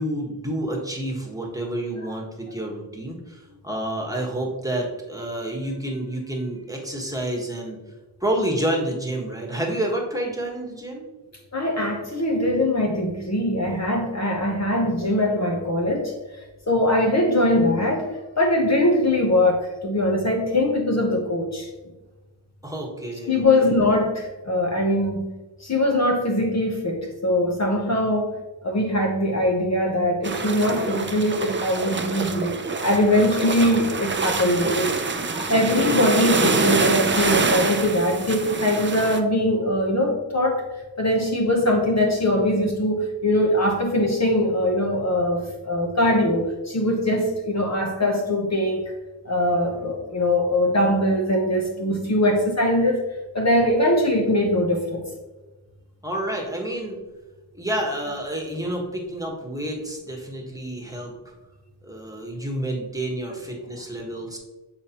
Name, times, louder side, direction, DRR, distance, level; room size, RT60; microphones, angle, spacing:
voice 1, 0.0-7.8 8.2-11.1 22.6-23.7 56.0-57.0 57.5-61.3 61.8-64.4, right 1 dB, 10° right, -1 dB, 1.3 m, -29 dB
voice 2, 11.5-21.7 23.3-25.3 25.6-28.3 28.6-34.9 35.3-40.6 41.0-48.9 49.2-53.0 53.3-55.0, left 1 dB, 40° left, 1 dB, 0.9 m, -22 dB
sound 1, 30.2-39.2, right 4 dB, 25° right, 0.5 m, -25 dB
7.7 x 4.6 x 2.9 m, 1.2 s
wide cardioid pair, 110°, 43 cm